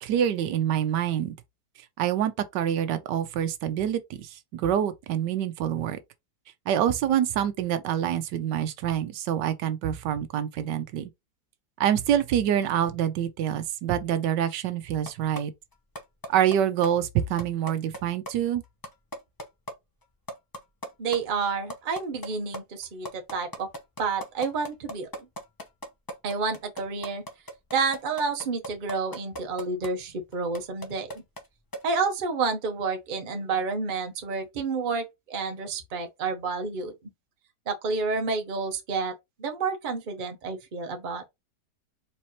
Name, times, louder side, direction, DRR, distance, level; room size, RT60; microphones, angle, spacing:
voice 1, 0.0-1.3 2.0-6.0 6.7-11.1 11.8-15.5 16.3-18.6, right 10 dB, 85° right, 1.3 m, -26 dB
sound 1, 15.1-15.4 15.7-16.6 16.8-16.9 17.2-18.0 18.3-18.4 18.6-19.7 20.0-20.1 20.3-21.2 21.5-29.9 30.3-31.5 31.7-31.8, equal, 30° left, 0.4 m, -37 dB
voice 2, 21.0-23.7 24.0-25.1 26.2-27.2 27.7-31.2 31.8-36.9 37.7-41.3, right 4 dB, 40° right, 0.8 m, -29 dB
4.4 x 3.3 x 3.0 m
omnidirectional pair, 1.8 m